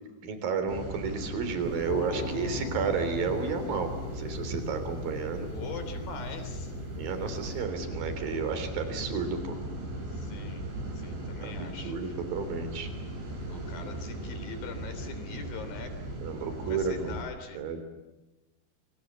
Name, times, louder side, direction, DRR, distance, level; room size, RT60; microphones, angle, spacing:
voice 1, 0.2-5.5 6.9-9.6 11.4-12.9 16.2-17.2 17.5-17.8, right 5 dB, 50° right, 9 dB, 4.9 m, -32 dB
sound 1, 0.7-17.2, right 1 dB, 70° right, 9.6 m, -38 dB
sound 2, 1.6-7.6, left 5 dB, 75° left, 5.2 m, -40 dB
voice 2, 5.5-6.7 10.1-10.7 10.9-12.1 13.5-16.0 16.5-17.6, left 4 dB, 50° left, 8 dB, 4.9 m, -42 dB
29.5 x 25.5 x 7.4 m, 1.1 s
omnidirectional pair, 5.4 m